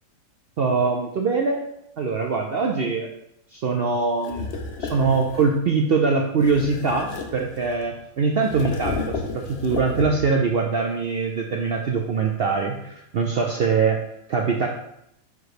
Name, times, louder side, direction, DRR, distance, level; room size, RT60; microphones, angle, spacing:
voice 1, 0.6-1.6 2.0-3.1 3.5-4.5 4.8-14.0 14.3-14.7, right 4 dB, 60° right, 2 dB, 0.6 m, -23 dB
sound 1, 4.2-5.6 6.4-7.9 8.4-10.4, left 4 dB, 55° left, 0.8 m, -32 dB
7.0 x 3.1 x 4.7 m, 0.78 s
omnidirectional pair, 1.5 m